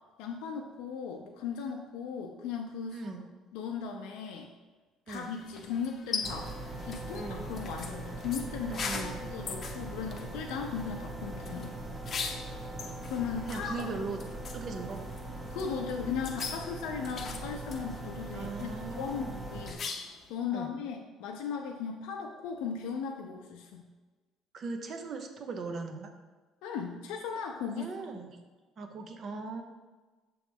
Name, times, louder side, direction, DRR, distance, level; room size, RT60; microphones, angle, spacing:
voice 1, 0.2-3.0 3.5-4.5 5.1-6.5 6.8-11.8 13.1-13.9 15.5-19.8 20.3-23.9 26.6-27.9 28.1-28.2, left 6 dB, 85° left, 1 dB, 0.5 m, -37 dB
voice 2, 2.9-3.3 5.1-5.3 7.1-7.5 8.7-9.2 13.5-14.2 14.5-15.0 18.3-19.5 20.5-20.7 24.5-26.1 27.7-28.4 28.8-29.6, right 3 dB, 45° right, 5 dB, 0.8 m, -39 dB
sound 1, 5.1-20.3, left 5 dB, 40° left, 0.7 m, -42 dB
sound 2, 6.2-19.7, right 2 dB, 25° right, 1.0 m, -41 dB
6.3 x 3.1 x 5.2 m, 1.3 s
cardioid pair, 105°, 0 cm